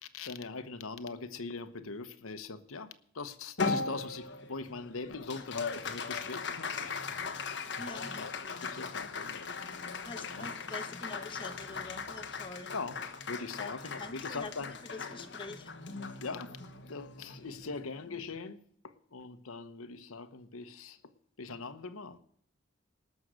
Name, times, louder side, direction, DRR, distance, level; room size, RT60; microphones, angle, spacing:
voice 1, 0.0-7.1 7.4-7.9 8.2-10.5 12.7-13.0 13.3-14.7 16.2-16.6 16.9-21.0 21.4-22.2, left 4 dB, 90° left, 1.0 m, -42 dB
Applause, 3.6-18.2, left 4 dB, 55° left, 1.3 m, -39 dB
voice 2, 7.8-8.2 10.0-12.7 13.5-15.7, left 2 dB, 25° left, 1.1 m, -45 dB
19.0 x 6.4 x 6.3 m
head